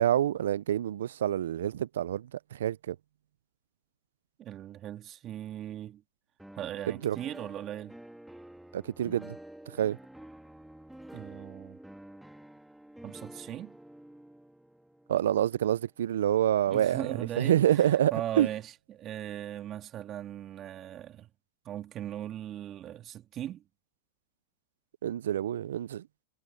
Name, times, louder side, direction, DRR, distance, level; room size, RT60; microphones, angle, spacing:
voice 1, 0.0-3.0 6.9-7.2 8.7-9.4 9.7-10.0 15.1-18.5 25.0-26.0, right 11 dB, 85° right, 0.4 m, -27 dB
voice 2, 4.4-6.0 6.5-8.0 11.1-11.8 13.0-13.8 16.7-21.3 21.6-23.6, right 11 dB, 35° right, 2.3 m, -39 dB
sound 1, 6.4-16.3, right 1 dB, 5° right, 2.8 m, -50 dB
hypercardioid pair, 120°, 0 cm